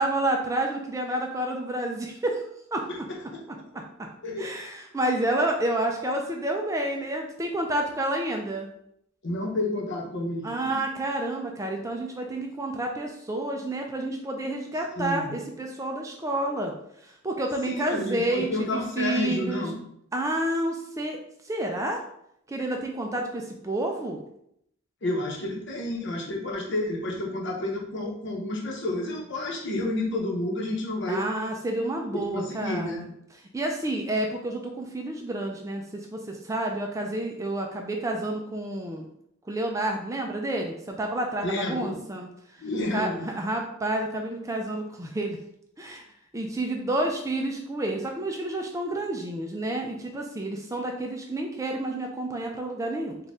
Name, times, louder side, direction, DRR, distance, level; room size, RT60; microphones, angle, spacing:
voice 1, 0.0-2.4 2.7-2.8 3.7-3.8 4.4-8.7 10.4-16.7 17.2-19.6 20.1-21.2 21.4-22.0 22.5-24.2 31.1-33.1 33.5-39.1 39.5-42.3 42.9-45.4 45.8-46.0 46.3-53.2, right 1 dB, 15° right, 2 dB, 0.4 m, -29 dB
voice 2, 2.9-3.4 4.2-4.5 9.2-10.8 15.0-15.3 17.6-19.8 25.0-31.2 32.3-33.0 41.4-42.0 42.6-43.3, left 1 dB, 60° left, -1 dB, 0.9 m, -30 dB
4.1 x 2.4 x 3.6 m, 0.73 s
head